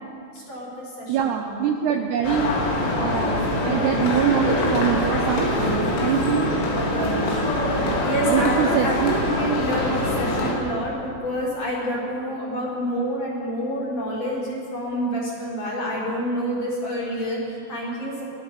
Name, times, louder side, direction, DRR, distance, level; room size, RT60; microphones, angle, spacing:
voice 1, 0.3-1.7 7.2-7.7 8.0-8.6 8.8-8.9 9.2-18.2, equal, 35° left, -4 dB, 6.1 m, -28 dB
voice 2, 1.1-6.5 7.0-7.4 7.8-9.1, right 8 dB, 75° right, 5 dB, 2.6 m, -25 dB
sound 1, 2.2-10.5, left 1 dB, 80° left, 5.7 m, -23 dB
23.0 x 18.0 x 6.9 m, 2.4 s
omnidirectional pair, 5.5 m